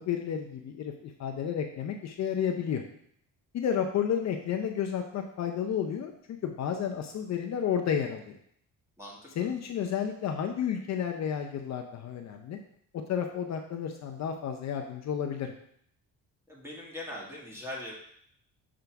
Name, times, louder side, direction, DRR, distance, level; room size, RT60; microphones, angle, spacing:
voice 1, 0.0-2.8 3.5-8.4 9.4-12.6 12.9-15.5, left 8 dB, 55° left, 3 dB, 0.7 m, -31 dB
voice 2, 9.0-9.5 16.5-17.9, left 1 dB, 10° right, -4 dB, 1.9 m, -41 dB
6.8 x 3.8 x 4.6 m, 0.68 s
cardioid pair, 125°, 34 cm